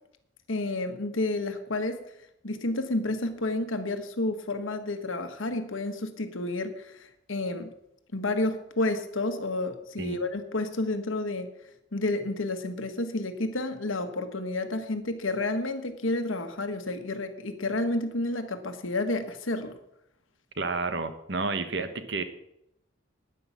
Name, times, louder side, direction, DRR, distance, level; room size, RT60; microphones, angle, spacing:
voice 1, 0.5-2.0 2.4-7.7 8.1-11.5 11.9-19.8, left 2 dB, 80° left, 7 dB, 1.4 m, -30 dB
voice 2, 20.6-22.2, right 3 dB, 60° right, 10 dB, 1.2 m, -30 dB
9.8 x 9.8 x 7.2 m, 0.80 s
head